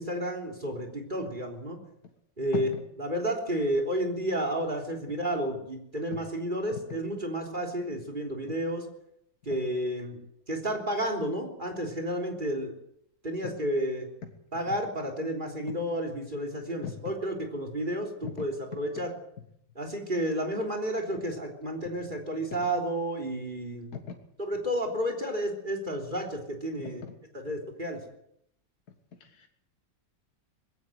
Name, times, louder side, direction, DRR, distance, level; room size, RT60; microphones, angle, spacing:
voice 1, 0.0-1.8 2.4-2.7 3.0-8.9 9.5-10.2 10.5-12.7 13.2-14.1 14.5-19.1 19.8-23.9 24.4-27.0 27.4-28.0, right 1 dB, 25° right, 4 dB, 3.6 m, -31 dB
voice 2, 2.5-2.8 6.1-6.2 6.7-7.0 13.4-13.5 14.2-14.3 14.7-14.8 15.7-15.8 16.8-17.1 18.2-18.5 18.7-19.1 22.0-22.1 23.9-24.2 26.8-27.1 29.2-29.5, left 6 dB, 55° left, 4 dB, 2.2 m, -39 dB
21.0 x 16.5 x 8.0 m, 0.75 s
omnidirectional pair, 2.0 m